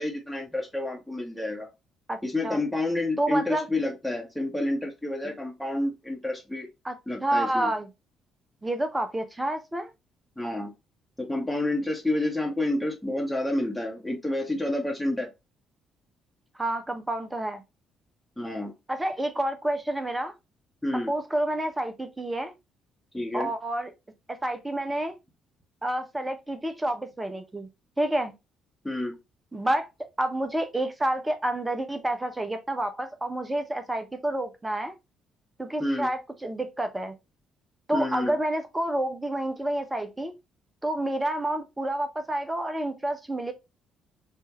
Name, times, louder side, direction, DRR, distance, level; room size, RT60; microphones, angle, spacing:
voice 1, 0.0-1.7 2.2-6.7 7.1-7.7 10.4-10.7 11.2-15.3 18.4-18.7 20.8-21.1 23.1-23.5 28.8-29.2 35.8-36.1 37.9-38.3, left 1 dB, 5° left, 1.5 m, -29 dB
voice 2, 3.2-3.7 5.2-5.3 6.8-6.9 7.2-7.9 8.6-9.9 16.6-17.6 18.9-20.3 21.1-22.5 23.3-23.9 24.3-25.2 25.8-27.7 28.0-28.3 29.5-29.9 30.2-34.9 35.6-37.1 37.9-40.3 40.8-43.5, right 1 dB, 15° right, 1.0 m, -29 dB
4.4 x 2.8 x 3.1 m
hypercardioid pair, 45°, 0 cm